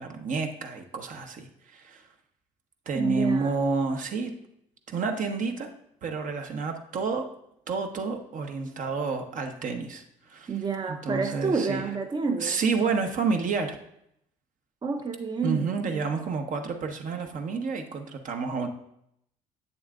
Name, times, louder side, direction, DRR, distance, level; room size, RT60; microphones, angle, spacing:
voice 1, 0.0-2.0 2.9-4.4 4.9-5.7 6.0-7.3 7.7-10.0 10.3-10.5 10.9-11.9 12.4-13.8 15.4-18.7, right 4 dB, 55° right, 4 dB, 1.0 m, -29 dB
voice 2, 2.9-3.6 10.5-12.6 14.8-16.0, right 5 dB, 30° right, 6 dB, 0.7 m, -29 dB
8.0 x 7.0 x 2.5 m, 0.76 s
hypercardioid pair, 60°, 16 cm